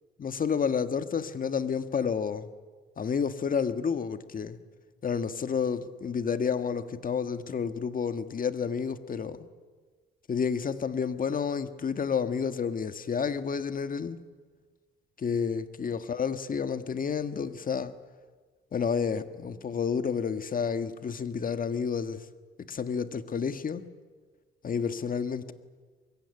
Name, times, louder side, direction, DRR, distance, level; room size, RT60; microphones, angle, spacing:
voice 1, 0.2-2.5 3.0-4.6 5.0-9.4 10.3-14.2 15.2-17.9 18.7-22.2 22.7-23.8 24.6-25.5, left 6 dB, 45° left, 11 dB, 1.7 m, -30 dB
24.0 x 22.0 x 9.8 m, 1.4 s
cardioid pair, 90°, 20 cm